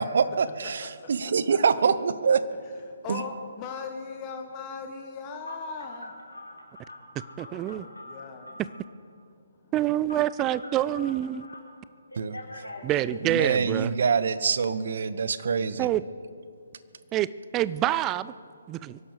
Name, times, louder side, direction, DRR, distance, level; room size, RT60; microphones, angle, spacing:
voice 1, 0.0-2.4 3.1-3.2 12.2-12.4 13.2-15.9, right 6 dB, 55° right, 14 dB, 0.8 m, -25 dB
voice 2, 3.0-6.1 7.4-8.6, left 5 dB, 25° left, 3 dB, 1.2 m, -38 dB
Telephone, 5.4-8.8 10.1-11.6 12.1-13.7, left 1 dB, 85° left, 3.3 m, -43 dB
voice 3, 7.4-7.9 9.7-11.5 12.8-13.9 15.8-16.0 17.1-18.3 18.7-19.0, right 13 dB, 20° right, 18 dB, 0.4 m, -26 dB
24.5 x 11.5 x 5.1 m, 2.3 s
figure-of-eight pair, 140°, 0 cm